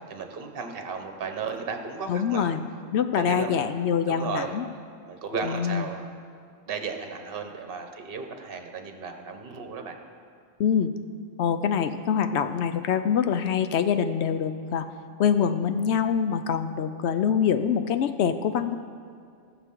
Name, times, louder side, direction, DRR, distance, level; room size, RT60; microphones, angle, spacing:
voice 1, 0.0-2.5 3.2-3.7 4.1-4.6 5.1-6.1 6.7-10.0, right 5 dB, 50° right, 5 dB, 1.1 m, -34 dB
voice 2, 2.1-2.6 2.9-4.6 5.5-5.9 10.6-10.9 11.4-14.9 15.2-18.8, left 7 dB, 65° left, 9 dB, 0.8 m, -25 dB
19.5 x 6.9 x 3.8 m, 2.3 s
omnidirectional pair, 1.3 m